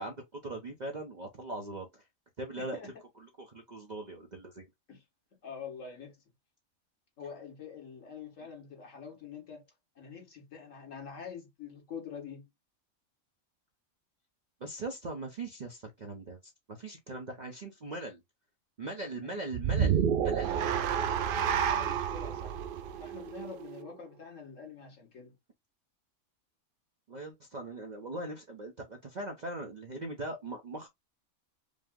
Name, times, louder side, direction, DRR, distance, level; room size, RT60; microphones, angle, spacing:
voice 1, 0.0-2.0 2.4-2.8 3.2-4.7 14.6-18.2 18.8-20.6 27.1-30.9, right 2 dB, 45° right, 0.7 m, -40 dB
voice 2, 2.6-2.9 4.9-5.0 5.4-6.2 7.2-9.6 10.0-12.4 19.0-19.5 20.7-22.7 23.0-25.4, left 6 dB, 65° left, 1.9 m, -46 dB
sound 1, 19.5-23.9, right 8 dB, 80° right, 0.4 m, -30 dB
5.2 x 2.1 x 3.5 m
omnidirectional pair, 1.5 m